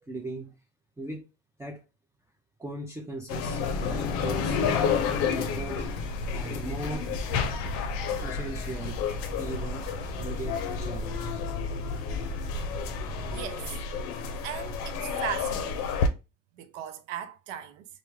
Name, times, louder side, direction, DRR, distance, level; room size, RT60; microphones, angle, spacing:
voice 1, 0.1-0.5 1.0-1.2 1.6-1.8 2.6-4.7 5.1-5.9 6.3-7.2 8.2-9.0 9.4-9.9 10.2-11.3, right 2 dB, 10° right, 0.5 m, -38 dB
sound 1, 3.3-16.1, left 6 dB, 80° left, 0.6 m, -31 dB
sound 2, 3.7-13.4, left 2 dB, 70° right, 1.6 m, -37 dB
voice 2, 13.3-13.7 14.4-15.9 16.6-17.9, right 9 dB, 90° right, 0.5 m, -37 dB
2.6 x 2.1 x 3.2 m
supercardioid pair, 70°, 35 cm